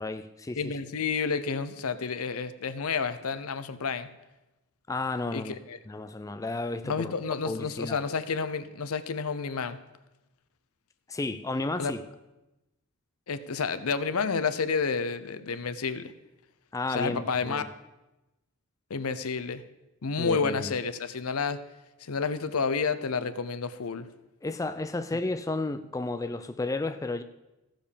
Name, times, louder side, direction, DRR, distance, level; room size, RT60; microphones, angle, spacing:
voice 1, 0.0-0.7 4.9-5.5 5.9-7.1 7.5-8.0 11.1-12.0 16.7-17.7 20.2-20.7 24.4-27.2, left 2 dB, 15° left, 10 dB, 0.3 m, -32 dB
voice 2, 0.5-4.1 5.3-5.8 6.8-9.8 11.8-11.9 13.3-16.1 16.9-17.7 18.9-19.6 20.0-21.6 22.0-24.1, left 5 dB, 80° left, 13 dB, 0.7 m, -30 dB
14.5 x 5.2 x 6.7 m, 0.99 s
head